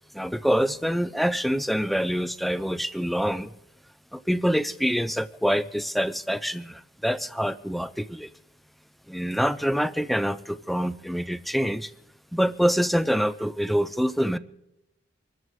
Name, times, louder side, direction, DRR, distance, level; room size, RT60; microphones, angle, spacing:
voice 1, 0.1-3.5 4.1-8.3 9.1-11.9 12.3-14.4, equal, ahead, 14 dB, 0.4 m, -26 dB
25.0 x 14.0 x 3.2 m, 0.90 s
head